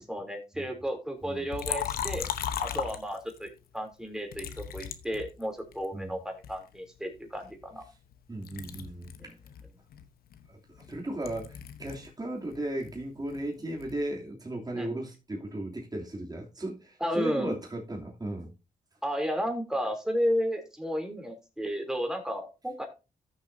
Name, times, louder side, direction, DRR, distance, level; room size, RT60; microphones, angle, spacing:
voice 1, 0.0-2.3 2.6-7.8 9.2-9.3 14.8-14.9 17.0-17.6 19.0-22.9, equal, 5° right, 3.1 m, -33 dB
Liquid, 1.5-3.5 4.3-5.9 6.4-8.2 8.4-12.1 12.4-14.0, left 9 dB, 85° left, 0.9 m, -37 dB
voice 2, 8.3-9.3 10.5-18.5, right 1 dB, 25° right, 2.9 m, -36 dB
14.5 x 6.7 x 2.7 m
cardioid pair, 80°, 15 cm